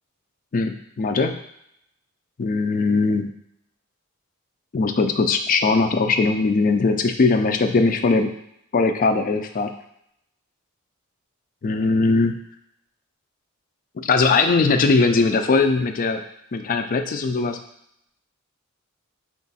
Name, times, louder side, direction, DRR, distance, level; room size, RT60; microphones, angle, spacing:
voice 1, 0.5-1.4 2.4-3.3 4.7-8.3 8.7-9.7 11.6-12.3 14.0-16.2 16.5-17.6, left 3 dB, 40° left, 7 dB, 0.4 m, -20 dB
4.5 x 2.4 x 4.0 m, 0.75 s
head